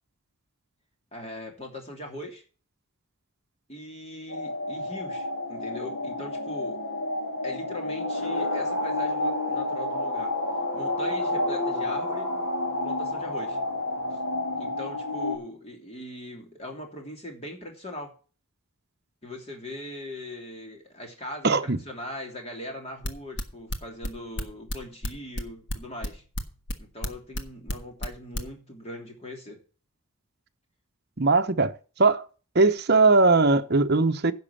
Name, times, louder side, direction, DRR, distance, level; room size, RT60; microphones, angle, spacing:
voice 1, 1.1-2.4 3.7-6.8 7.4-10.3 10.7-12.3 12.8-13.6 14.1-14.2 14.6-18.1 19.2-26.2 26.8-29.6, left 1 dB, 30° left, 3.0 m, -40 dB
sound 1, 4.3-15.4, left 2 dB, 75° left, 3.2 m, -30 dB
voice 2, 21.4-21.8 31.2-32.2 32.5-34.3, right 3 dB, 45° right, 0.8 m, -20 dB
sound 2, 23.0-28.5, left 1 dB, 55° left, 1.4 m, -30 dB
10.5 x 6.2 x 7.0 m
head